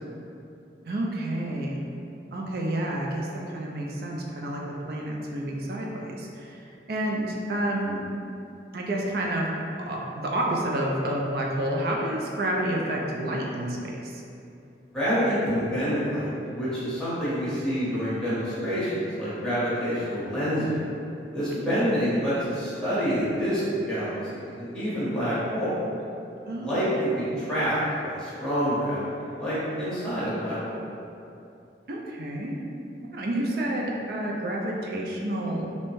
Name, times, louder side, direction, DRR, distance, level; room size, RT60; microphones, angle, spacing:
voice 1, 0.9-1.8 2.3-4.6 4.9-6.6 6.9-8.0 8.7-9.5 9.8-14.2 21.6-21.8 26.5-26.8 31.9-32.5 33.1-35.8, right 1 dB, 55° right, -2 dB, 0.4 m, -29 dB
voice 2, 14.9-20.8 21.3-25.8 26.6-29.0 29.3-30.8, equal, 5° left, -12 dB, 0.7 m, -27 dB
2.6 x 2.1 x 3.0 m, 2.6 s
head